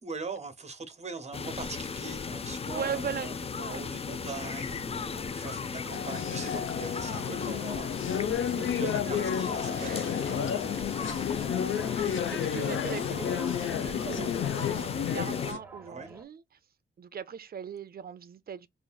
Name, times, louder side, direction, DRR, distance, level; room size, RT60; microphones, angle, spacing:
voice 1, 0.0-3.4 3.7-7.9 8.3-10.6 15.9-16.1, right 4 dB, 35° right, 1.0 m, -41 dB
sound 1, 1.3-15.5, left 5 dB, 30° left, 0.4 m, -36 dB
voice 2, 2.7-3.8 4.4-4.5 7.3-7.6 8.5-9.3 9.7-10.3 11.0-11.1 11.6-16.4 17.0-18.7, right 7 dB, 50° right, 0.5 m, -40 dB
sound 2, 5.9-15.6, left 8 dB, 80° left, 0.6 m, -31 dB
sound 3, 9.6-16.2, right 1 dB, 10° right, 0.8 m, -47 dB
5.0 x 2.5 x 2.3 m
cardioid pair, 95°, 20 cm